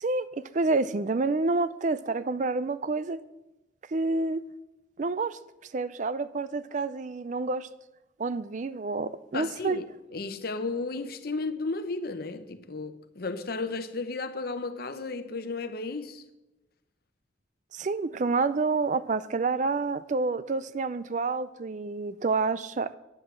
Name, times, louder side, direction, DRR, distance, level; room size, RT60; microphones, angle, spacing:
voice 1, 0.0-3.2 3.9-4.4 5.0-5.4 5.7-7.7 8.2-9.8 17.7-22.9, right 3 dB, 40° right, 0.4 m, -28 dB
voice 2, 9.3-9.8 10.1-16.2, left 3 dB, 55° left, 0.8 m, -34 dB
9.6 x 8.0 x 7.6 m
head